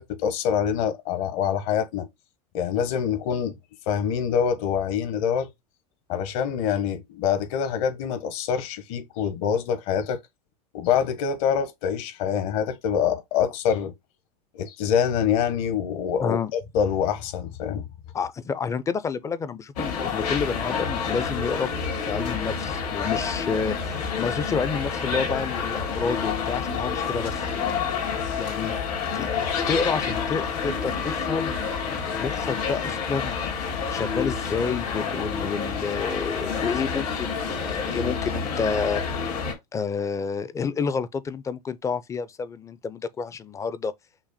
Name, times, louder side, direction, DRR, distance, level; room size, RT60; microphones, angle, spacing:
voice 1, 0.0-2.1 2.5-3.5 3.9-5.5 6.1-10.2 10.7-13.9 14.5-17.9, left 8 dB, 60° left, 1.1 m, -25 dB
voice 2, 16.2-16.5 18.1-21.7 22.1-27.5 28.4-28.8 29.1-29.3 29.7-31.6 32.2-33.4 33.9-39.0 39.3-39.4 39.7-43.9, left 5 dB, 15° left, 0.4 m, -29 dB
sound 1, 19.8-39.5, left 6 dB, 85° left, 2.6 m, -28 dB
5.9 x 2.1 x 4.1 m
supercardioid pair, 120°, 20 cm